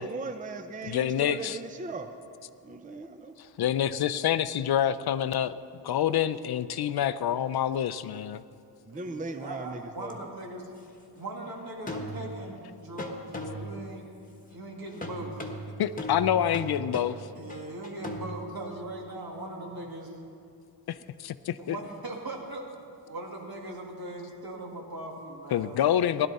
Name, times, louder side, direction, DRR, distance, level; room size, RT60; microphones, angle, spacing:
voice 1, 0.0-2.1 2.6-3.3 8.9-10.2, right 3 dB, 20° right, 7 dB, 0.6 m, -38 dB
voice 2, 0.8-1.6 3.4-5.5 5.8-8.4 15.8-17.2 20.9-21.8 25.5-26.3, left 10 dB, 65° left, 14 dB, 0.5 m, -27 dB
voice 3, 8.9-10.7 11.2-14.1 14.5-15.4 17.4-20.2 21.6-22.7 23.1-25.8, right 2 dB, 60° right, 0 dB, 2.1 m, -40 dB
sound 1, 10.1-10.2 11.9-12.6 13.0-13.9 15.0-18.3, equal, 20° left, 1.3 m, -38 dB
16.0 x 11.5 x 4.1 m, 2.4 s
wide cardioid pair, 95°, 40 cm